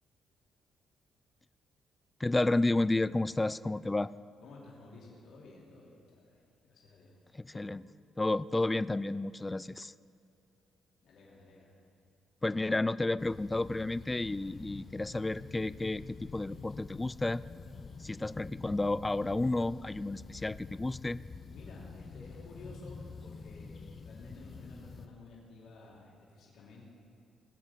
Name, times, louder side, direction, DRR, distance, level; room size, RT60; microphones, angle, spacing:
voice 1, 2.2-4.1 7.3-7.8 8.2-9.9 12.4-17.4 18.0-21.2, left 2 dB, 15° left, 18 dB, 0.3 m, -31 dB
voice 2, 4.4-7.2 7.5-7.7 11.0-11.7 21.5-26.9, left 3 dB, 70° left, -4 dB, 2.9 m, -53 dB
sound 1, 13.2-25.1, left 4 dB, 40° left, 0.8 m, -47 dB
19.5 x 7.8 x 5.3 m, 2.4 s
cardioid pair, 90°, 0 cm